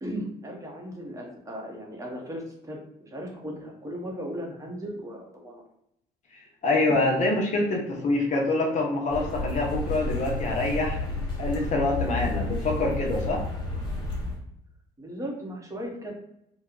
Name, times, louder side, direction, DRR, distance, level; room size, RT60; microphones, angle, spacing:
voice 1, 0.0-5.6 12.1-12.5 15.0-16.1, equal, 20° right, -1 dB, 0.9 m, -37 dB
voice 2, 6.6-11.0 11.4-13.4, left 2 dB, 45° left, 0 dB, 0.8 m, -25 dB
sound 1, 9.1-14.4, left 2 dB, 30° left, 1.4 m, -31 dB
2.9 x 2.3 x 3.7 m, 0.78 s
cardioid pair, 110°, 17 cm